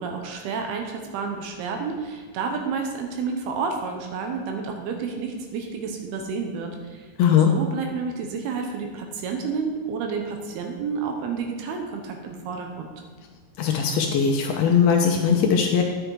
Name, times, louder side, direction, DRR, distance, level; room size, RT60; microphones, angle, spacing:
voice 1, 0.0-7.1 7.4-12.9, right 5 dB, 75° right, 3 dB, 2.6 m, -30 dB
voice 2, 7.2-7.5 13.6-15.8, left 7 dB, 75° left, 2 dB, 2.4 m, -20 dB
10.5 x 7.8 x 4.7 m, 1.5 s
omnidirectional pair, 5.0 m